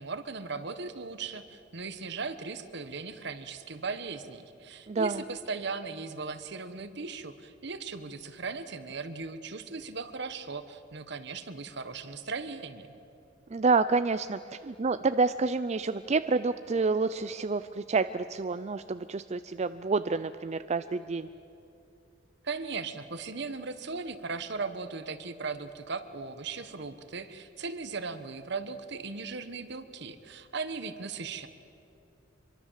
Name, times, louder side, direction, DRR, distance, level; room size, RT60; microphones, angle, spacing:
voice 1, 0.0-12.9 22.4-31.5, right 4 dB, 65° right, 11 dB, 1.3 m, -38 dB
voice 2, 4.9-5.2 13.5-21.3, right 4 dB, 35° right, 11 dB, 0.5 m, -28 dB
25.5 x 23.0 x 7.5 m, 2.7 s
head